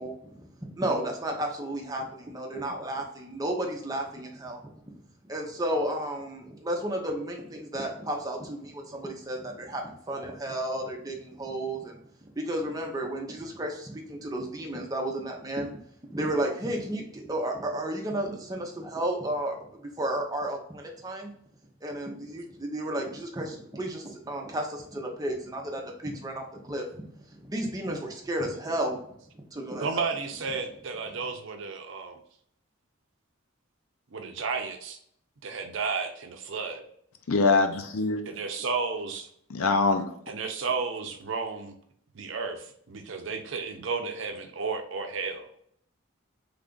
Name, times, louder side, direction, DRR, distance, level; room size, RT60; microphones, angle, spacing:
voice 1, 0.0-4.9 5.2-15.7 16.1-21.3 21.8-29.0 29.3-30.0, right 1 dB, 20° right, 1 dB, 0.6 m, -33 dB
voice 2, 29.8-32.2 34.1-35.0 35.4-36.8 38.3-39.3 40.3-41.7 42.1-45.4, right 4 dB, 60° right, 5 dB, 0.5 m, -32 dB
voice 3, 37.3-38.2 39.5-40.1, left 3 dB, 85° left, 7 dB, 0.5 m, -23 dB
3.3 x 2.5 x 3.7 m, 0.66 s
head